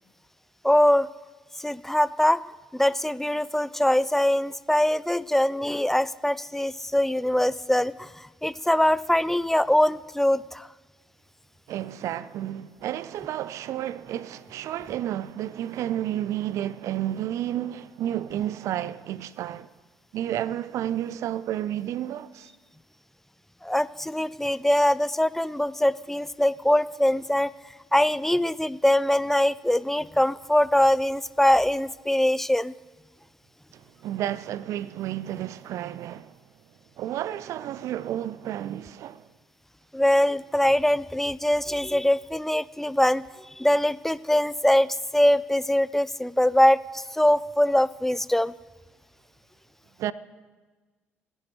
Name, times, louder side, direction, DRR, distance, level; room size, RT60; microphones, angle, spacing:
voice 1, 0.6-1.1 1.6-2.4 2.7-10.7 23.6-27.5 27.9-32.7 39.9-48.5, left 1 dB, 5° left, 0.3 m, -23 dB
voice 2, 11.7-19.7 20.1-22.5 33.7-36.4 37.0-39.3 50.0-50.1, right 12 dB, 55° right, 0.4 m, -31 dB
27.5 x 9.9 x 3.2 m
figure-of-eight pair, 50°, 6 cm